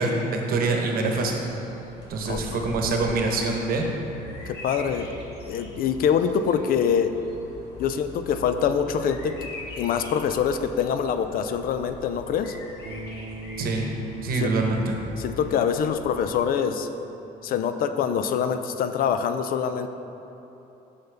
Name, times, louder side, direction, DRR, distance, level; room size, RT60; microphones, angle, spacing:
voice 1, 0.0-1.4 2.1-3.9 13.6-13.8 14.2-15.0, right 3 dB, 60° right, 2 dB, 1.0 m, -25 dB
Bird vocalization bird call bird song, 1.1-16.3, left 1 dB, 75° left, 1.4 m, -42 dB
voice 2, 2.2-2.7 4.5-5.2 5.5-7.1 7.8-9.5 9.8-12.6 14.3-14.5 15.2-16.9 17.4-19.9, left 7 dB, 60° left, 9 dB, 0.4 m, -25 dB
Bass guitar, 12.9-19.1, right 2 dB, 85° right, 0.7 m, -43 dB
7.9 x 5.6 x 3.4 m, 3.0 s
cardioid pair, 110°, 17 cm